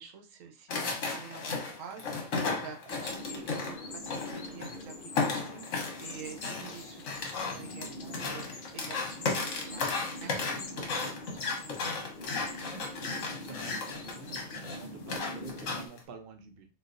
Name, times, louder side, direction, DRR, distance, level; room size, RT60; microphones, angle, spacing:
voice 1, 0.0-12.0, right 7 dB, 75° right, 3 dB, 1.0 m, -48 dB
sound 1, 0.7-4.8 5.1-16.0, left 4 dB, 75° left, 1.2 m, -34 dB
sound 2, 2.9-15.9, left 1 dB, 50° left, 0.5 m, -44 dB
voice 2, 13.0-16.7, right 4 dB, 55° right, 5 dB, 0.7 m, -49 dB
4.0 x 2.4 x 2.5 m, 0.33 s
omnidirectional pair, 1.4 m